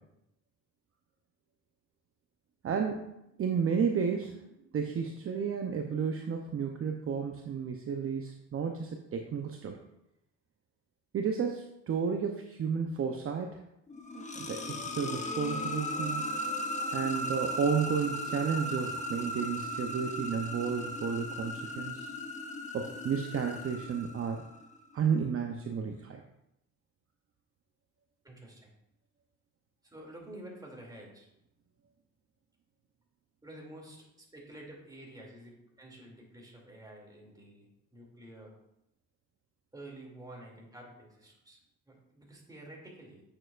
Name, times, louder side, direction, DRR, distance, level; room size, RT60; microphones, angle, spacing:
voice 1, 2.6-3.1 3.4-4.4 4.7-9.8 11.1-13.6 14.1-16.2 16.9-22.1 22.7-24.4 24.9-26.2, right 6 dB, 45° right, 3 dB, 0.7 m, -32 dB
sound 1, 13.9-24.6, left 1 dB, 25° left, 0.9 m, -37 dB
voice 2, 28.2-28.7 29.8-31.3 33.4-38.5 39.7-41.6 41.9-43.2, right 1 dB, 15° right, -2 dB, 2.5 m, -50 dB
8.8 x 6.7 x 2.5 m, 0.83 s
cardioid pair, 90°, 30 cm